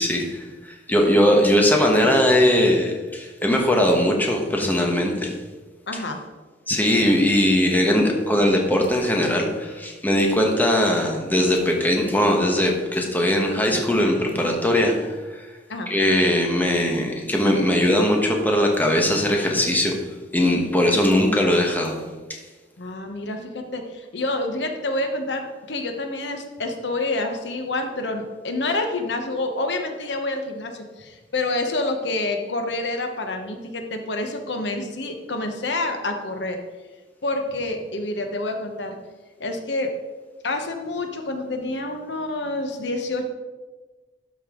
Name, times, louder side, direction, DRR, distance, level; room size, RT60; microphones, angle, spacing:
voice 1, 0.0-5.3 6.7-15.2 15.9-20.0 20.3-22.0, left 1 dB, 10° left, 1 dB, 1.2 m, -20 dB
voice 2, 5.9-6.2 15.7-15.9 22.8-36.6 37.2-39.0 39.4-39.9 40.4-43.3, left 2 dB, 75° left, 5 dB, 1.0 m, -28 dB
12.5 x 5.4 x 3.7 m, 1.3 s
head